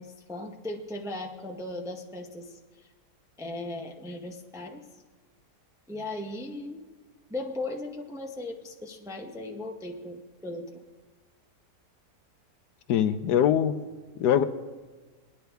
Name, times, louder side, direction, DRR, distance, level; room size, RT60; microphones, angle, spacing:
voice 1, 0.0-2.6 3.4-4.8 5.9-6.8 7.3-10.7, left 2 dB, 5° right, 2 dB, 0.5 m, -37 dB
voice 2, 12.9-13.8 14.2-14.4, left 9 dB, 90° left, 11 dB, 1.3 m, -22 dB
22.5 x 9.8 x 3.4 m, 1.3 s
omnidirectional pair, 1.7 m